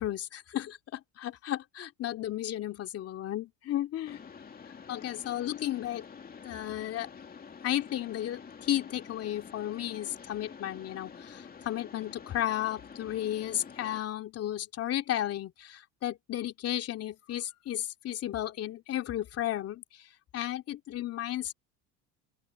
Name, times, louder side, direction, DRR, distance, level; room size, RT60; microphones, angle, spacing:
voice 1, 0.0-4.2 4.9-6.1 6.4-7.1 7.6-20.1 20.3-21.5, left 12 dB, 45° left, 2.7 m, -34 dB
Mechanisms, 4.0-14.0, left 6 dB, 25° left, 2.5 m, -48 dB
open air
supercardioid pair, 105°, 33 cm